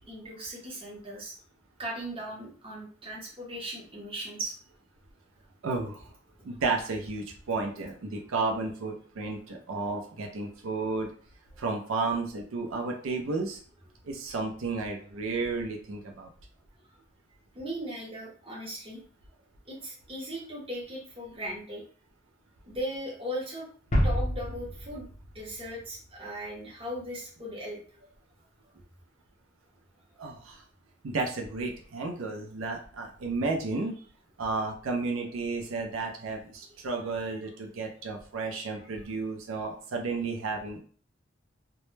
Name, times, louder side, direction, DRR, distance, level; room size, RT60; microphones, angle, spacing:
voice 1, 0.1-1.3 1.8-4.5 17.5-19.0 19.7-21.8 22.7-23.7 24.0-25.1 25.3-27.8, equal, 25° right, -4 dB, 0.7 m, -38 dB
voice 2, 5.6-6.1 6.4-11.1 11.6-13.6 14.0-16.3 30.2-30.6 31.0-34.0 34.4-40.8, right 3 dB, 85° right, 2 dB, 0.5 m, -32 dB
sound 1, 23.9-26.6, equal, 35° left, 0.6 m, -30 dB
2.1 x 2.0 x 3.1 m, 0.44 s
head